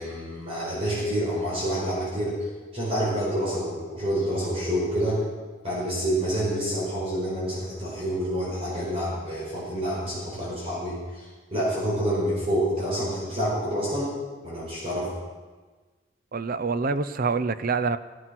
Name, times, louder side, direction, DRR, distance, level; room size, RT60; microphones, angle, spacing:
voice 1, 0.0-5.2 5.6-14.1 14.4-15.1, equal, 30° right, -6 dB, 4.9 m, -28 dB
voice 2, 16.3-18.0, right 4 dB, 50° right, 12 dB, 0.6 m, -26 dB
17.0 x 12.5 x 6.0 m, 1.3 s
head